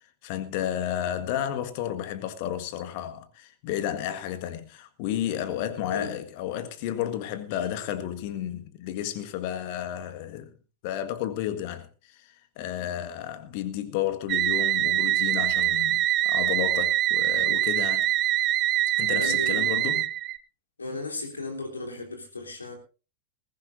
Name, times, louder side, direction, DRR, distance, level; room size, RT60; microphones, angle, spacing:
voice 1, 0.2-10.5 10.8-12.3 12.6-18.1 19.0-20.1, left 11 dB, 45° left, 1.7 m, -32 dB
sound 1, 14.3-20.4, right 13 dB, 35° right, 0.9 m, -24 dB
voice 2, 19.1-19.7 20.8-22.7, left 2 dB, 75° left, 3.5 m, -35 dB
20.5 x 15.0 x 2.7 m
figure-of-eight pair, 90°, 0 cm